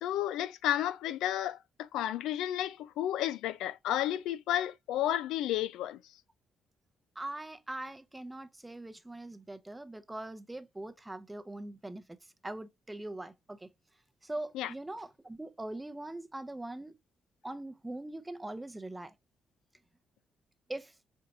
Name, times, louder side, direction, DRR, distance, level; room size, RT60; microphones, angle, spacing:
voice 1, 0.0-6.0 14.5-14.7, left 12 dB, 90° left, 0.4 m, -32 dB
voice 2, 7.2-12.2 12.4-13.7 14.2-17.0 17.4-19.1 20.7-20.9, right 2 dB, 15° right, 0.6 m, -42 dB
4.5 x 3.9 x 2.7 m
cardioid pair, 90°, 0 cm